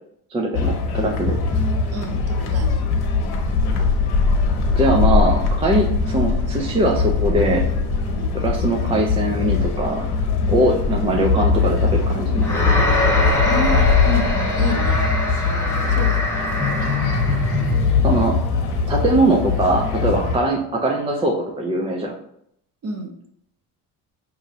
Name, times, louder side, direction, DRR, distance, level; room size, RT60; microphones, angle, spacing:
voice 1, 0.3-1.4 4.7-7.7 8.3-10.1 10.5-12.8 18.0-18.4 18.9-22.1, right 1 dB, 15° right, 0 dB, 0.3 m, -21 dB
sound 1, 0.5-20.4, left 4 dB, 65° left, 1.0 m, -21 dB
voice 2, 1.9-2.9 8.1-8.3 10.4-10.6 13.4-15.0 15.9-16.2 22.8-23.1, right 1 dB, 35° right, 1 dB, 0.9 m, -29 dB
sound 2, 12.4-17.8, left 1 dB, 5° left, 0.9 m, -24 dB
5.2 x 3.0 x 2.6 m, 0.72 s
cardioid pair, 125°, 42 cm